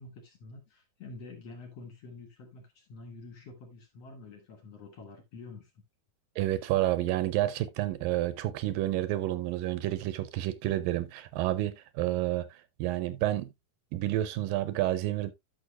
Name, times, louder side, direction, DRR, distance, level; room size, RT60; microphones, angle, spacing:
voice 1, 0.0-5.7, left 3 dB, 55° left, 1.9 m, -47 dB
voice 2, 6.4-13.5 13.9-15.3, right 14 dB, 80° right, 2.2 m, -30 dB
13.0 x 6.0 x 2.3 m
omnidirectional pair, 4.2 m